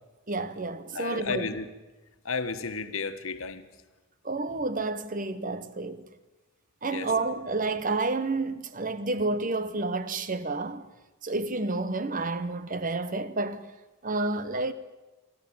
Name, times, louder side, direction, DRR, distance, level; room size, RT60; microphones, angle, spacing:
voice 1, 0.3-1.5 4.2-6.0 6.8-10.8 11.2-13.7 14.0-14.7, right 3 dB, 40° right, 1.0 m, -30 dB
voice 2, 0.9-1.6 2.2-3.7 6.8-7.1, left 4 dB, 70° left, 1.5 m, -32 dB
29.0 x 12.0 x 8.9 m
head